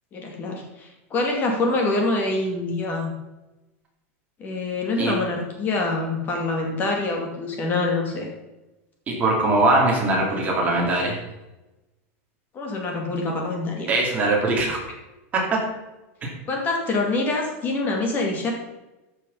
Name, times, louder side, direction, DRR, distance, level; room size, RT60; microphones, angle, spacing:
voice 1, 0.1-3.1 4.4-8.3 12.5-13.9 16.5-18.5, left 2 dB, 25° left, 1 dB, 2.5 m, -25 dB
voice 2, 9.1-11.2 13.9-14.8 15.3-15.4 16.2-16.3, right 2 dB, 20° right, -2 dB, 2.8 m, -21 dB
14.0 x 6.3 x 5.6 m, 1.0 s
supercardioid pair, 165°, 8 cm